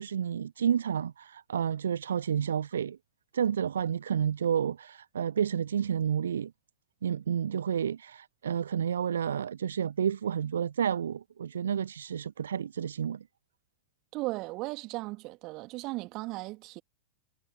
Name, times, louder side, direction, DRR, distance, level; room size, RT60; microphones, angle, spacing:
voice 1, 0.0-3.0 3.3-6.5 7.0-13.2, right 8 dB, 65° right, 0.4 m, -30 dB
voice 2, 14.1-16.8, right 22 dB, 40° right, 2.5 m, -36 dB
figure-of-eight pair, 90°, 0 cm